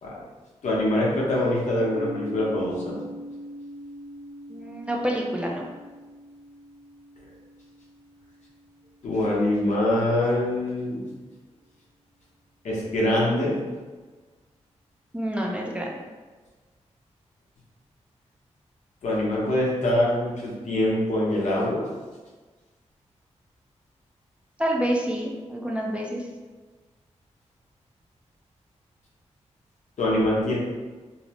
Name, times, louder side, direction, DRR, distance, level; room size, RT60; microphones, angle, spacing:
voice 1, 0.6-3.0 9.0-11.0 12.6-13.6 19.0-21.9 30.0-30.6, left 1 dB, 75° left, -5 dB, 0.8 m, -24 dB
sound 1, 1.9-9.7, equal, 15° left, 0.9 m, -42 dB
voice 2, 4.5-5.6 15.1-15.9 24.6-26.2, equal, 10° right, -2 dB, 0.5 m, -27 dB
2.7 x 2.0 x 2.8 m, 1.3 s
cardioid pair, 60°, 12 cm